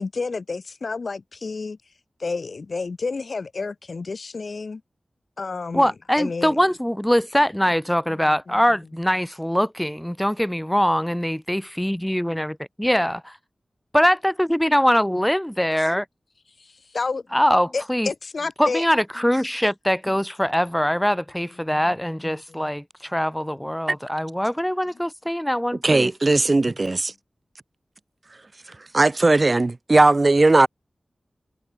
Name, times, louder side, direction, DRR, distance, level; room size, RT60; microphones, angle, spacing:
voice 1, 0.0-1.8 2.2-4.8 5.4-5.9 6.2-6.6 8.1-8.2 8.5-8.6 16.6-17.2 17.7-18.8, left 4 dB, 60° left, 1.6 m, -30 dB
voice 2, 5.7-13.4 13.9-16.1 17.3-18.1 18.6-26.1, equal, 5° left, 0.5 m, -22 dB
voice 3, 25.8-27.1 28.7-30.7, right 2 dB, 40° right, 1.0 m, -18 dB
wide cardioid pair, 90°, 0 cm